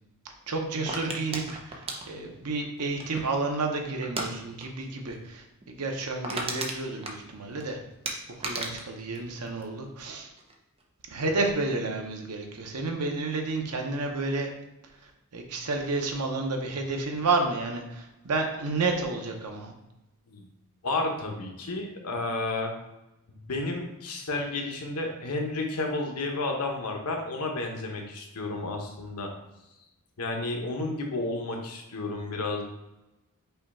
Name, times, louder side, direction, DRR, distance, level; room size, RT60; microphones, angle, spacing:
voice 1, 0.5-7.8 8.3-10.3 11.1-14.5 15.0-19.7, right 3 dB, 90° right, 3 dB, 0.8 m, -31 dB
sound 1, 0.9-3.4 4.0-4.3 4.6-4.8 5.1-5.2 5.6-5.7 6.0-7.6 8.0-10.1 10.4-10.8, right 2 dB, 25° right, 0.6 m, -35 dB
voice 2, 20.8-22.7 23.3-29.3 30.2-32.6, left 2 dB, 85° left, 2 dB, 0.9 m, -31 dB
5.5 x 2.3 x 4.2 m, 0.94 s
head